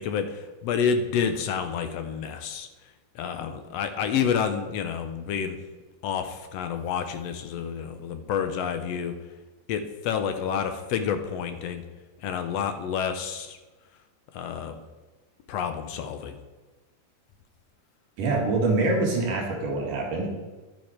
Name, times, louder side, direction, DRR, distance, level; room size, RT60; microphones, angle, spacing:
voice 1, 0.0-2.7 3.1-5.6 6.0-9.2 9.7-11.8 12.2-13.6 14.3-14.8 15.5-16.3, left 7 dB, 75° left, 8 dB, 1.6 m, -29 dB
voice 2, 18.2-20.3, right 3 dB, 80° right, -1 dB, 3.6 m, -25 dB
11.0 x 9.9 x 4.4 m, 1.2 s
omnidirectional pair, 3.6 m